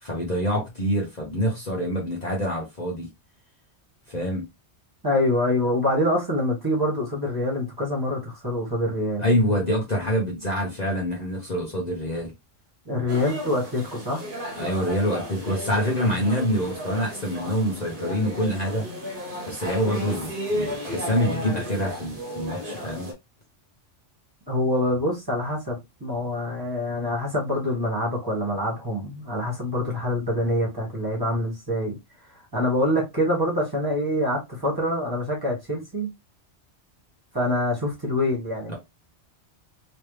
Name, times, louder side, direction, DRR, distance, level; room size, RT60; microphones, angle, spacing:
voice 1, 0.0-3.1 4.1-4.4 9.2-12.3 14.6-18.9 19.4-23.1, equal, 40° left, 1.0 m, -26 dB
voice 2, 5.0-9.2 12.8-14.3 24.5-32.0 32.3-36.1 37.3-38.7, left 1 dB, 20° right, 1.6 m, -25 dB
sound 1, 13.1-23.1, equal, 50° right, 1.2 m, -34 dB
3.2 x 3.0 x 3.2 m
omnidirectional pair, 1.2 m